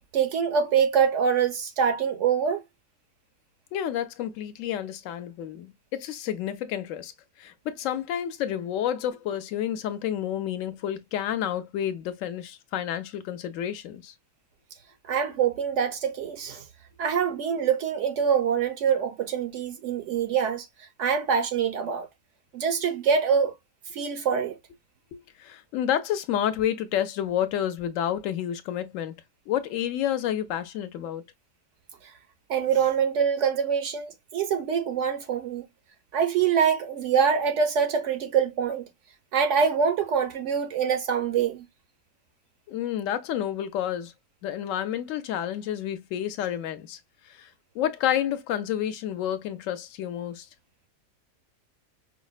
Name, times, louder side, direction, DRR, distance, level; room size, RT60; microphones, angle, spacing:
voice 1, 0.1-2.6 15.0-16.6 17.0-22.1 22.5-23.5 23.9-24.6 32.5-35.6 36.1-38.8 39.3-41.6, right 7 dB, 65° right, 0.9 m, -25 dB
voice 2, 3.7-7.1 7.4-14.1 25.1-29.1 29.5-31.2 42.7-44.1 44.4-47.0 47.2-47.5 47.7-50.5, left 10 dB, 70° left, 0.9 m, -30 dB
5.1 x 2.1 x 2.3 m
omnidirectional pair, 1.5 m